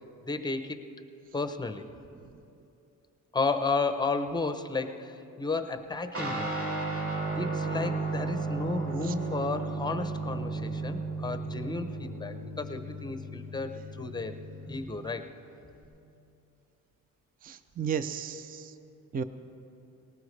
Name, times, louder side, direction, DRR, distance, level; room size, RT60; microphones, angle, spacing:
voice 1, 0.2-0.8 1.3-1.9 3.3-6.5 7.4-14.4 14.7-15.3, left 3 dB, 15° left, 8 dB, 0.7 m, -33 dB
Guitar, 6.1-15.8, right 3 dB, 45° right, 2.7 m, -34 dB
voice 2, 17.4-18.7 19.1-19.2, right 7 dB, 25° right, 11 dB, 0.5 m, -34 dB
19.0 x 18.5 x 3.2 m, 2.7 s
cardioid pair, 120°, 33 cm